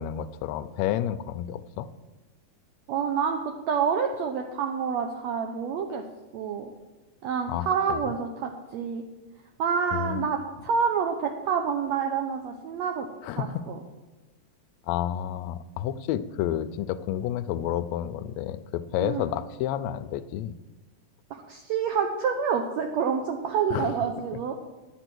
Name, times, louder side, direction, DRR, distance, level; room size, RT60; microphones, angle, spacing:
voice 1, 0.0-1.9 7.5-8.0 9.9-10.3 13.2-13.6 14.9-20.5 23.7-23.9, left 11 dB, 80° left, 10 dB, 1.6 m, -30 dB
voice 2, 2.9-6.0 6.3-6.7 7.2-9.0 9.6-13.1 13.3-13.8 19.0-19.2 21.3-24.6, right 6 dB, 75° right, 4 dB, 1.7 m, -28 dB
10.5 x 9.0 x 6.1 m, 1.1 s
omnidirectional pair, 3.7 m